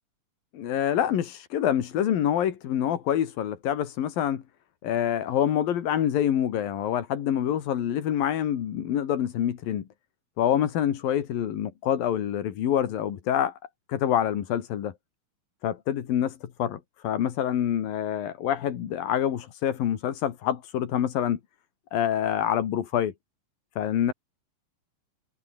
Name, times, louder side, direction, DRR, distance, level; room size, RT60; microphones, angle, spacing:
voice 1, 0.5-4.4 4.8-9.8 10.4-13.5 13.9-14.9 15.6-21.4 21.9-23.1 23.8-24.1, left 10 dB, 90° left, 3.8 m, -26 dB
omnidirectional pair, 3.9 m